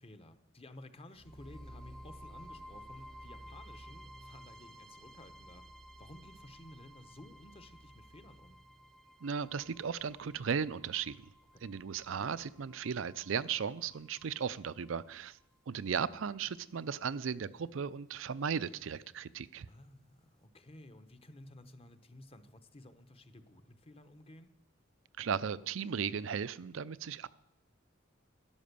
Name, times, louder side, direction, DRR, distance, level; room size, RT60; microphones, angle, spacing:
voice 1, 0.0-5.7 6.0-8.6 19.7-24.5, left 1 dB, 30° left, 1.0 m, -54 dB
sound 1, 1.1-15.1, equal, 5° left, 0.8 m, -54 dB
voice 2, 9.2-11.2 11.6-15.4 15.7-19.7 25.2-27.3, right 6 dB, 70° right, 0.5 m, -36 dB
12.5 x 11.0 x 6.8 m
head